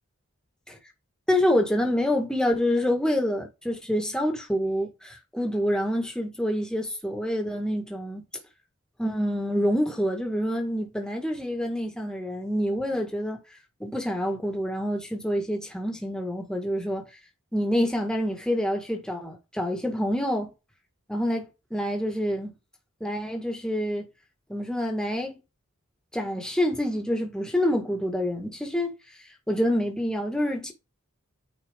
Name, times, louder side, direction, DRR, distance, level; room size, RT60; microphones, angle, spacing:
voice 1, 1.3-8.3 9.0-13.4 13.8-17.0 17.5-20.5 21.1-22.5 23.0-24.1 24.5-25.4 26.1-28.9 29.5-30.7, equal, 5° left, 1.6 m, -27 dB
9.1 x 4.3 x 3.6 m
head